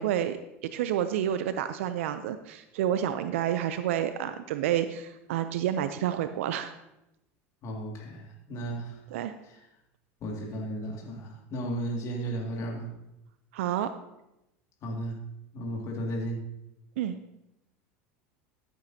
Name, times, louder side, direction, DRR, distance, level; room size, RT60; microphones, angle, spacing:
voice 1, 0.0-6.7 9.1-9.3 13.5-13.9 17.0-17.2, right 10 dB, 80° right, 10 dB, 0.5 m, -29 dB
voice 2, 7.6-9.0 9.4-9.6 10.2-12.9 14.8-15.2 15.5-16.4, right 1 dB, 45° left, -1 dB, 2.2 m, -34 dB
14.0 x 8.0 x 2.8 m, 0.89 s
hypercardioid pair, 95°, 7 cm